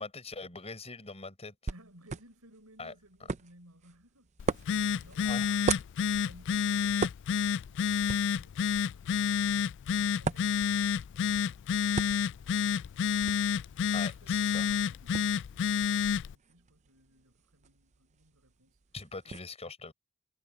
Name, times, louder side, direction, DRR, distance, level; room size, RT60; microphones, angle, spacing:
voice 1, 0.0-1.5 2.8-2.9 5.2-5.7 13.9-14.7 18.9-19.9, left 3 dB, 30° left, 5.3 m, -42 dB
sound 1, 1.7-19.4, right 4 dB, 30° right, 0.5 m, -41 dB
voice 2, 1.7-4.3 4.6-9.1 9.9-11.6 14.0-18.8 19.2-19.4, right 1 dB, 80° right, 5.3 m, -60 dB
Telephone, 4.4-16.3, left 7 dB, 55° left, 0.3 m, -29 dB
head